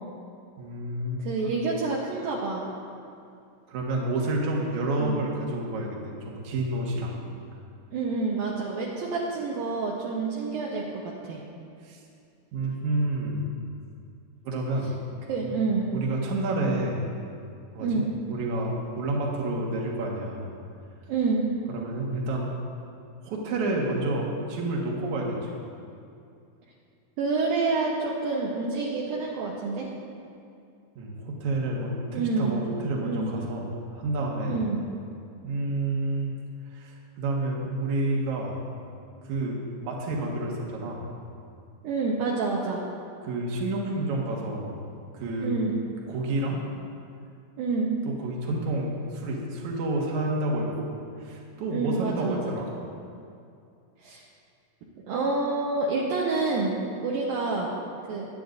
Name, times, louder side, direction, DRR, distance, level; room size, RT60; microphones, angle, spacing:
voice 1, 0.6-1.5 3.7-7.2 11.8-12.0 12.5-13.4 14.4-14.9 15.4-15.5 15.9-17.1 17.7-18.0 18.3-20.5 21.7-22.5 23.2-25.6 31.0-34.6 35.4-36.3 36.7-38.6 39.2-41.1 43.2-44.8 45.1-45.7 46.1-46.6 48.0-50.9 51.2-52.7, right 2 dB, 55° right, -2 dB, 2.5 m, -29 dB
voice 2, 1.2-2.6 5.0-5.2 7.9-11.4 15.3-15.9 17.8-18.1 21.1-21.5 27.2-29.9 32.1-32.6 33.0-33.3 34.5-34.9 41.8-42.8 45.4-45.8 47.6-48.0 51.7-52.5 54.0-54.2 55.1-56.8 57.0-57.7 58.1-58.3, right 3 dB, 70° right, -4 dB, 2.5 m, -28 dB
23.0 x 9.2 x 2.6 m, 2.5 s
omnidirectional pair, 4.6 m